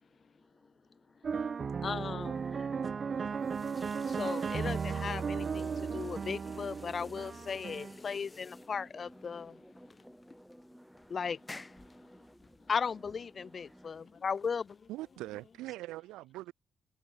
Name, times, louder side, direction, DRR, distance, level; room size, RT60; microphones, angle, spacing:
sound 1, 1.2-7.9, right 6 dB, 55° right, 0.9 m, -35 dB
voice 1, 1.8-2.5 4.1-9.6 11.1-11.4 12.7-14.8, left 6 dB, 55° left, 0.7 m, -36 dB
voice 2, 2.4-2.8 5.5-6.2 6.6-6.7 7.0-7.1 7.7-7.8 8.5-8.9 9.3-11.1 11.8-12.3 13.7-13.9, equal, ahead, 3.5 m, -55 dB
sound 2, 3.1-15.5, left 2 dB, 25° left, 6.5 m, -54 dB
voice 3, 14.9-16.5, right 17 dB, 90° right, 1.8 m, -42 dB
supercardioid pair, 50°, 0 cm